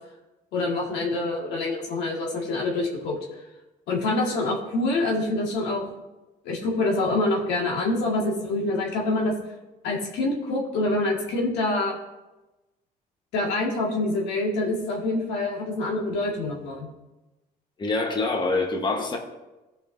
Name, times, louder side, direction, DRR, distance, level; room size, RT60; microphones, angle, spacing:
voice 1, 0.5-3.2 3.9-5.9 6.4-9.4 9.8-12.0 13.3-16.9, left 2 dB, 90° left, -2 dB, 2.0 m, -26 dB
voice 2, 17.8-19.2, left 3 dB, 25° left, 1 dB, 1.3 m, -25 dB
16.0 x 5.6 x 2.7 m, 1.1 s
cardioid pair, 110°, 17 cm